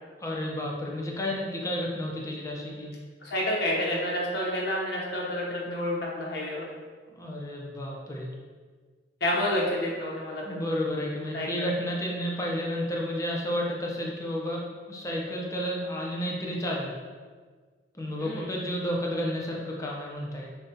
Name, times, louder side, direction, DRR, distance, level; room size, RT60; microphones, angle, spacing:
voice 1, 0.2-2.9 7.1-8.3 10.4-16.9 18.0-20.5, equal, 20° left, -2 dB, 0.6 m, -31 dB
voice 2, 3.2-6.7 9.2-10.4 11.3-11.7 18.2-18.5, left 1 dB, 65° left, -4 dB, 0.8 m, -29 dB
6.7 x 2.3 x 2.8 m, 1.5 s
head